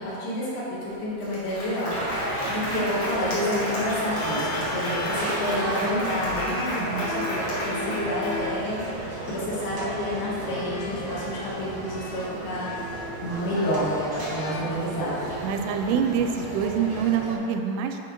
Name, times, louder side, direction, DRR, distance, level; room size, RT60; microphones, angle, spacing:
voice 1, 0.0-15.3 15.9-16.0, left 1 dB, 75° left, -8 dB, 3.1 m, -29 dB
Applause, 0.8-0.9 1.2-8.7, equal, 50° left, 1.9 m, -32 dB
sound 1, 1.9-17.4, right 2 dB, 55° right, 1.2 m, -34 dB
sound 2, 4.1-8.7 9.7-9.9 10.4-15.2, left 4 dB, 90° left, 2.6 m, -37 dB
voice 2, 15.4-18.0, right 7 dB, 90° right, 5 dB, 2.5 m, -26 dB
10.5 x 4.1 x 3.0 m, 2.9 s
omnidirectional pair, 4.4 m